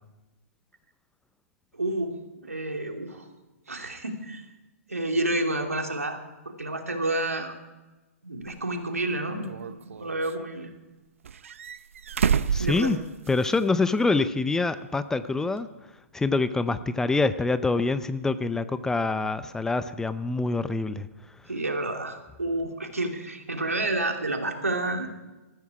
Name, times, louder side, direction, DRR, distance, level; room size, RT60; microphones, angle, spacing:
voice 1, 1.7-3.2 3.7-4.5 4.9-6.2 6.4-7.5 8.2-10.7 12.6-13.0 21.5-25.1, right 2 dB, 85° right, 4 dB, 2.7 m, -30 dB
sound 1, 8.5-8.6 9.4-10.3 11.2-13.6 13.9-14.0 15.6-15.7, right 7 dB, 65° right, 0.7 m, -29 dB
voice 2, 12.5-13.0 13.3-15.7 16.1-21.1, left 3 dB, 5° left, 13 dB, 0.5 m, -25 dB
20.5 x 14.0 x 4.8 m, 1.1 s
figure-of-eight pair, 120°, 8 cm